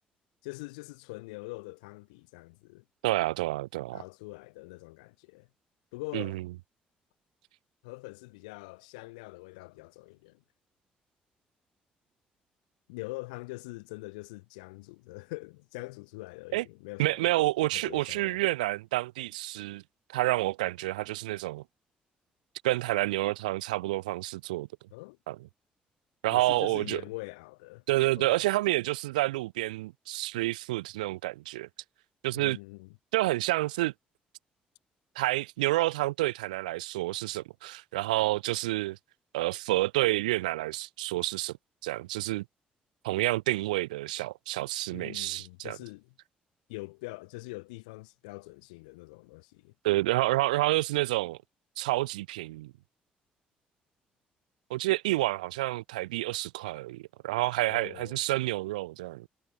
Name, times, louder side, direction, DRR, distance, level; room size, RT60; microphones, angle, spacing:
voice 1, 0.4-2.8 3.9-5.5 5.9-6.4 7.8-10.4 12.9-17.3 17.7-18.4 24.9-25.2 26.3-27.8 28.1-28.4 32.3-32.9 44.9-46.1 46.7-49.7 57.7-58.2, left 25 dB, 80° left, 4.7 m, -43 dB
voice 2, 3.0-4.0 6.1-6.4 16.5-16.6 17.0-19.8 20.1-21.6 22.6-24.7 25.3-25.4 26.2-27.0 27.9-31.7 32.2-32.6 33.1-33.9 35.2-39.0 39.3-41.6 41.8-42.4 43.0-45.8 49.8-51.4 51.8-52.7 54.7-59.3, right 18 dB, 80° right, 1.7 m, -29 dB
hypercardioid pair, 45°, 4 cm